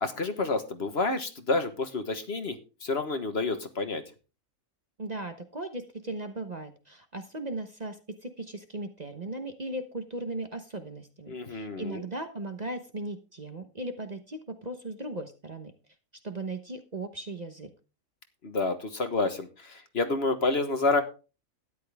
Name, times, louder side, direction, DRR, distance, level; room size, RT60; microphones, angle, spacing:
voice 1, 0.0-2.5 2.8-4.0 11.3-12.0 18.4-21.0, left 3 dB, 50° left, 8 dB, 1.5 m, -29 dB
voice 2, 5.0-15.7 16.2-17.7, right 2 dB, 35° right, 7 dB, 1.1 m, -37 dB
13.0 x 10.5 x 3.5 m, 0.33 s
omnidirectional pair, 1.4 m